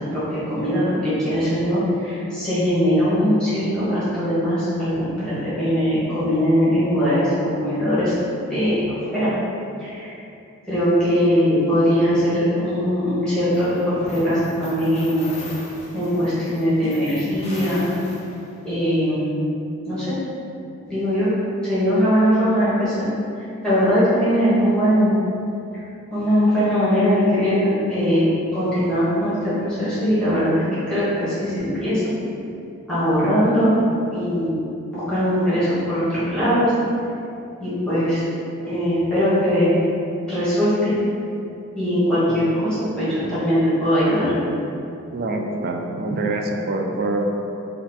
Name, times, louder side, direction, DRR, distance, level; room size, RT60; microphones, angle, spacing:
voice 1, 0.1-8.8 9.1-9.3 9.8-10.2 10.6-15.3 15.9-17.9 18.6-19.4 19.9-20.1 20.8-21.3 21.6-22.9 23.4-25.1 26.1-28.2 28.5-32.0 32.9-33.7 34.1-34.5 34.9-36.7 37.6-38.2 38.6-39.7 40.3-40.9 41.7-42.7 42.9-44.3, equal, 5° left, -13 dB, 1.5 m, -20 dB
sound 1, 13.5-18.7, left 1 dB, 30° left, 0.6 m, -38 dB
voice 2, 45.1-47.2, right 2 dB, 45° right, 2 dB, 0.4 m, -25 dB
4.4 x 2.5 x 4.1 m, 2.7 s
head